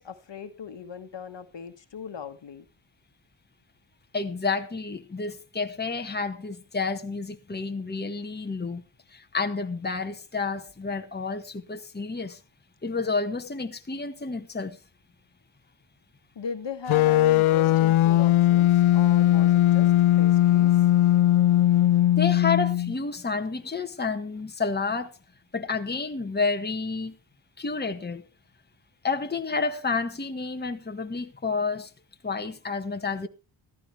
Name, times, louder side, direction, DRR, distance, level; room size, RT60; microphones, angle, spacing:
voice 1, 0.0-2.6 16.3-18.7 18.9-19.9 20.2-20.7, left 5 dB, 55° left, 1.6 m, -38 dB
voice 2, 4.1-8.8 9.1-12.4 12.8-14.8 22.2-25.1 25.5-27.2 27.6-28.2 29.0-31.9 32.2-33.3, left 4 dB, 20° left, 1.4 m, -30 dB
sound 1, 16.9-23.0, left 13 dB, 75° left, 0.6 m, -19 dB
14.5 x 13.5 x 3.4 m
cardioid pair, 70°, 50 cm